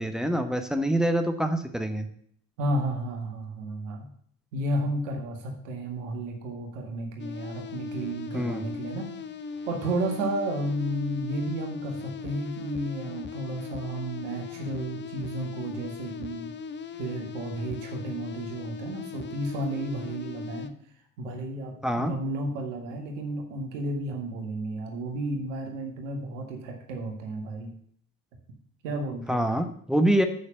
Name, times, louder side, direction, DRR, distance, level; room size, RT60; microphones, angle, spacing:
voice 1, 0.0-2.1 8.3-8.6 21.8-22.1 29.3-30.3, right 1 dB, ahead, 7 dB, 1.1 m, -25 dB
voice 2, 2.6-4.1 4.5-9.1 9.7-16.5 17.0-20.7 21.2-27.7 28.8-29.5, right 1 dB, 70° right, 2 dB, 1.9 m, -32 dB
sound 1, 7.2-20.7, left 6 dB, 30° left, 0.7 m, -39 dB
7.1 x 6.5 x 7.1 m, 0.62 s
figure-of-eight pair, 50°, 39 cm